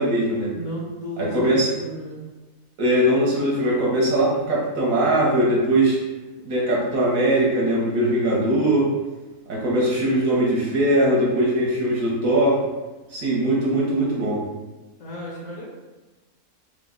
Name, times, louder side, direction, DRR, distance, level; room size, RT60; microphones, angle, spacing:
voice 1, 0.0-0.5 1.2-1.7 2.8-6.0 6.4-8.9 9.5-12.6 13.1-14.4, right 1 dB, 65° right, -4 dB, 1.1 m, -20 dB
voice 2, 0.5-2.2 15.0-15.7, equal, 65° left, -3 dB, 0.8 m, -34 dB
3.1 x 2.1 x 3.6 m, 1.1 s
omnidirectional pair, 1.7 m